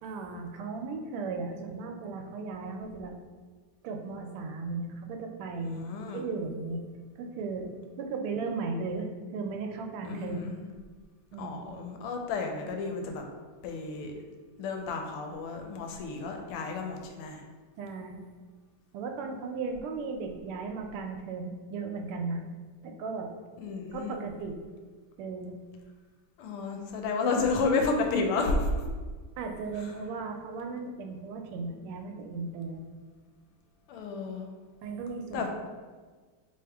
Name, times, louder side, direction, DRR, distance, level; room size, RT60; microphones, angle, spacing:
voice 1, 0.0-3.1 3.8-5.9 6.1-6.8 7.2-7.7 8.0-10.5 11.3-11.6 17.8-18.2 18.9-22.4 22.8-23.3 23.9-24.6 25.2-25.6 29.4-32.8 34.8-35.5, right 4 dB, 85° right, 4 dB, 1.4 m, -36 dB
voice 2, 5.5-6.2 10.0-10.6 11.4-13.2 13.6-14.1 14.6-17.4 23.6-24.2 26.4-28.7 29.8-29.9 33.9-34.5 35.3-35.5, left 4 dB, 90° left, 3 dB, 1.5 m, -31 dB
3.5 x 3.4 x 3.4 m, 1.4 s
omnidirectional pair, 2.4 m